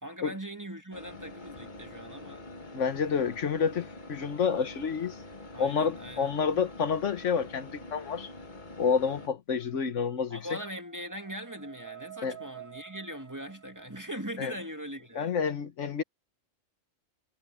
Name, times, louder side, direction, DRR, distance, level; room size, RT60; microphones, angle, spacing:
voice 1, 0.0-2.4 5.5-6.3 10.3-15.4, equal, 15° right, 1.9 m, -40 dB
sound 1, 0.9-9.3, left 2 dB, 40° left, 1.9 m, -45 dB
voice 2, 2.7-5.2 5.6-8.3 8.8-10.4 12.2-12.4 14.4-14.5 15.1-16.0, left 6 dB, 70° left, 1.3 m, -29 dB
sound 2, 9.6-14.6, right 12 dB, 80° right, 3.4 m, -50 dB
omnidirectional pair, 1.3 m